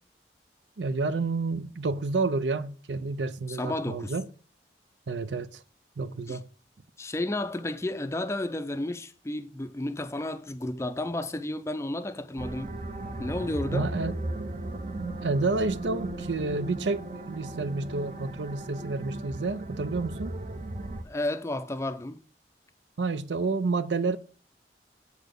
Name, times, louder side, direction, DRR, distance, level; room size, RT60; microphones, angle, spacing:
voice 1, 0.8-4.2 5.1-5.6 6.0-6.5 13.7-14.2 15.2-20.4 23.0-24.2, right 3 dB, 80° right, 0.6 m, -29 dB
voice 2, 3.5-4.1 6.3-6.4 7.0-12.7 13.2-13.9 21.0-22.3, left 1 dB, 15° left, 0.4 m, -32 dB
sound 1, 12.4-21.0, right 2 dB, 40° right, 0.7 m, -36 dB
7.6 x 4.2 x 6.6 m
head